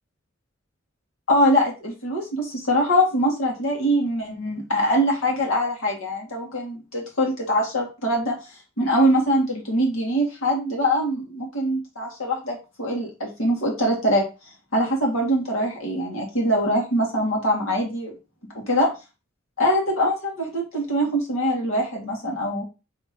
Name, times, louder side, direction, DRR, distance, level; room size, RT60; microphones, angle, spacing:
voice 1, 1.3-8.4 8.8-14.2 14.7-18.1 18.5-18.9 19.6-22.6, equal, 85° left, -1 dB, 2.0 m, -23 dB
5.1 x 3.5 x 2.8 m, 0.29 s
head